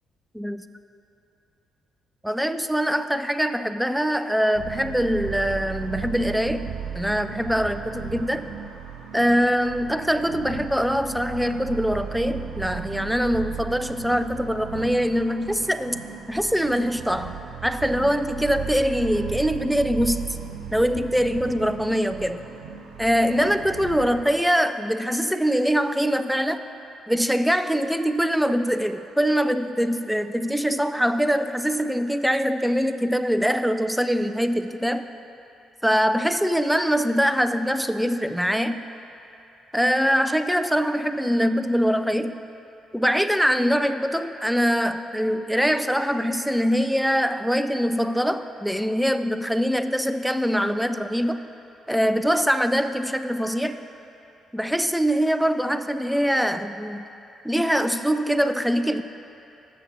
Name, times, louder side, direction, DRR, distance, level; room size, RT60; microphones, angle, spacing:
voice 1, 2.2-8.5 9.1-17.3 17.6-20.4 20.7-22.4 23.0-26.6 27.1-35.1 35.8-38.8 39.7-42.5 42.9-51.4 51.9-53.8 54.5-57.1 57.4-59.0, equal, ahead, 10 dB, 0.3 m, -23 dB
sound 1, 4.6-24.2, right 7 dB, 65° right, 0.6 m, -36 dB
7.4 x 6.4 x 4.5 m, 2.8 s
figure-of-eight pair, 40°, 0 cm